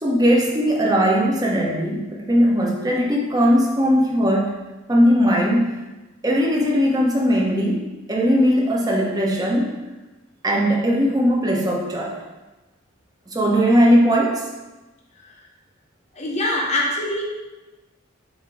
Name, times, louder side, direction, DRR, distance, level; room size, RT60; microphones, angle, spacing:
voice 1, 0.0-4.5 4.9-5.7 6.2-9.8 10.4-12.1 13.3-14.4, equal, 20° right, -2 dB, 0.9 m, -19 dB
voice 2, 16.1-17.2, left 1 dB, 35° left, -2 dB, 0.9 m, -23 dB
7.2 x 2.9 x 4.9 m, 1.1 s
head